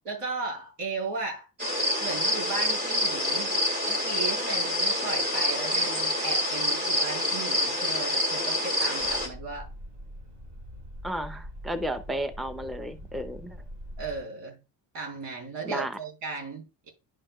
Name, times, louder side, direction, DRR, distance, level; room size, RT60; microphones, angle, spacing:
voice 1, 0.0-1.5 2.0-9.7 14.0-14.6 14.9-16.9, right 4 dB, 90° right, 4.5 m, -36 dB
sound 1, 1.6-9.3, left 1 dB, 20° right, 2.1 m, -27 dB
sound 2, 9.0-14.2, equal, 65° right, 4.8 m, -43 dB
voice 2, 11.0-13.6 15.6-16.0, right 1 dB, ahead, 0.6 m, -33 dB
11.0 x 5.8 x 2.4 m
cardioid pair, 135°, 43 cm